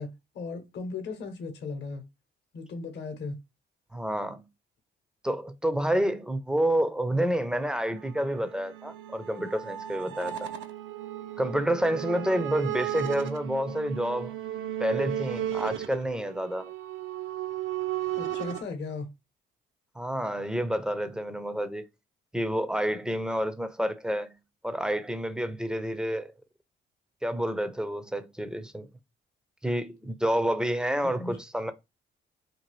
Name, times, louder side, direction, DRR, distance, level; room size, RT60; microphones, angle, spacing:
voice 1, 0.0-2.0 2.5-3.4 18.2-19.1 31.2-31.4, left 4 dB, 60° left, 0.8 m, -37 dB
voice 2, 3.9-4.4 5.2-10.5 11.4-14.3 14.8-16.7 20.0-21.8 22.3-24.3 24.6-26.3 27.2-28.9 29.6-31.7, right 1 dB, 5° right, 0.4 m, -29 dB
sound 1, 8.0-18.6, right 12 dB, 75° right, 0.5 m, -35 dB
2.7 x 2.4 x 3.0 m
cardioid pair, 90°, 20 cm